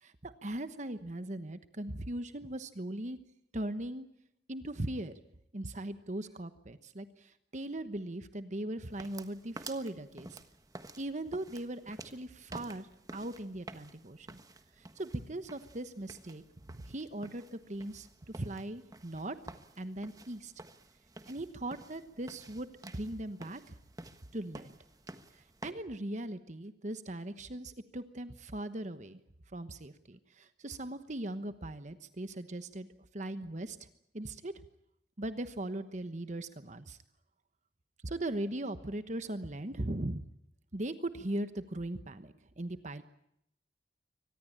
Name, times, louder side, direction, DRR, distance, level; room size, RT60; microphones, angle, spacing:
voice 1, 0.0-3.2 3.5-4.1 4.5-5.2 5.5-10.4 11.0-12.9 13.1-14.4 14.8-16.4 16.7-19.4 19.8-20.5 21.3-22.7 22.9-23.7 24.3-24.8 25.3-29.2 29.5-32.9 33.1-33.9 34.1-34.5 35.2-37.0 38.0-40.2 40.7-43.0, right 1 dB, 40° right, 11 dB, 1.1 m, -39 dB
sound 1, 8.8-25.7, right 2 dB, 20° right, 1.4 m, -51 dB
24.5 x 19.5 x 8.7 m, 0.77 s
head